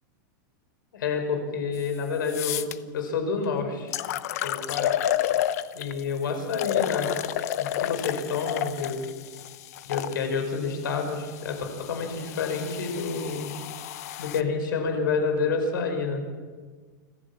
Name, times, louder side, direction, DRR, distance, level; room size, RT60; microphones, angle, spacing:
voice 1, 0.9-2.7 2.9-3.9 4.4-4.9 5.7-7.1 7.6-9.1 9.8-13.5 14.2-16.2, left 5 dB, 85° left, 5 dB, 5.6 m, -28 dB
sound 1, 1.8-1.9 2.3-2.7 3.4-3.5 3.9-6.0 6.5-10.1 11.0-14.4, left 12 dB, 50° left, 0.9 m, -30 dB
26.5 x 15.0 x 7.4 m, 1.5 s
supercardioid pair, 175°, 11 cm